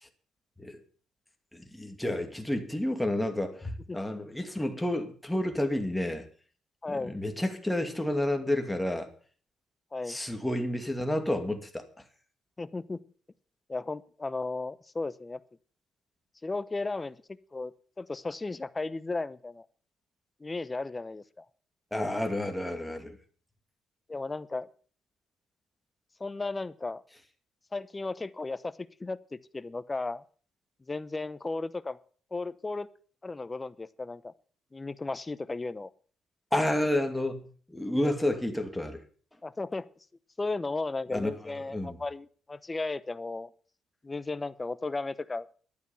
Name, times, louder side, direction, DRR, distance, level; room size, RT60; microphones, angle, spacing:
voice 1, 1.5-6.3 6.9-9.1 10.1-11.8 21.9-23.2 36.5-39.0 41.1-42.0, left 1 dB, 5° left, 2.5 m, -30 dB
voice 2, 6.8-7.2 9.9-10.2 12.6-13.0 13.7-15.4 16.4-17.2 17.5-17.7 18.0-19.6 20.4-21.4 24.1-24.7 26.2-27.0 27.7-28.7 29.0-30.2 30.9-32.0 32.3-32.9 33.2-34.3 34.7-35.9 39.4-39.9 40.4-43.5 44.0-45.5, left 3 dB, 20° left, 0.9 m, -35 dB
12.0 x 9.3 x 7.2 m
cardioid pair, 90°, 0 cm